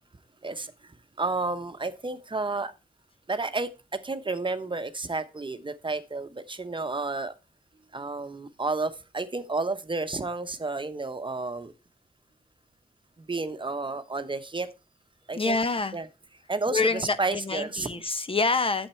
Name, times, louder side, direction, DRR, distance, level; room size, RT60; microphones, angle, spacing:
voice 1, 0.4-2.7 3.3-7.3 7.9-11.7 13.2-14.7 15.3-15.6 15.9-16.1 16.5-17.9, right 3 dB, 35° right, 10 dB, 0.9 m, -31 dB
voice 2, 15.3-16.0 16.7-18.9, left 3 dB, 35° left, 12 dB, 0.9 m, -27 dB
8.6 x 7.2 x 4.3 m, 0.28 s
cardioid pair, 50°, 15 cm